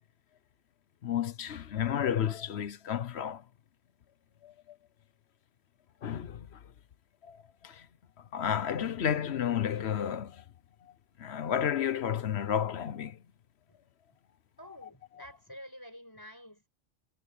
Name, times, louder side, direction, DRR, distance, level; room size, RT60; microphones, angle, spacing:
voice 1, 1.0-3.4 4.4-4.5 6.0-6.5 7.3-7.4 7.6-7.8 8.3-10.4 11.2-13.2, left 9 dB, 65° left, 1.0 m, -31 dB
voice 2, 14.6-16.7, equal, 15° left, 7.3 m, -49 dB
omnidirectional pair, 1.2 m